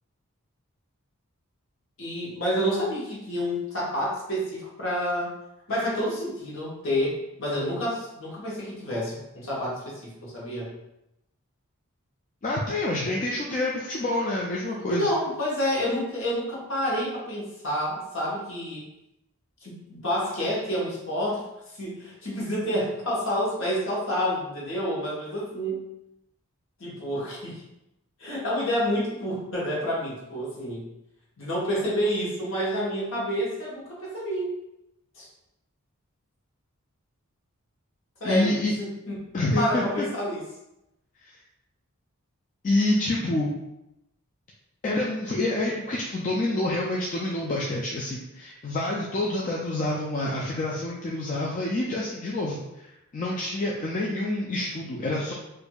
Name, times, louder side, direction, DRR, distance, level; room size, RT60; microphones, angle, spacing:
voice 1, 2.0-5.3 5.7-10.7 13.0-13.2 14.9-18.8 19.6-25.8 26.8-27.6 28.2-30.9 31.4-34.5 35.2-35.3 38.2-39.1 39.6-40.4, equal, 60° left, -5 dB, 1.1 m, -29 dB
voice 2, 12.4-15.1 38.2-38.7 39.3-40.1 42.6-43.6 44.8-52.9 53.1-55.3, left 1 dB, 35° left, -4 dB, 0.3 m, -27 dB
4.4 x 2.5 x 2.3 m, 0.88 s
head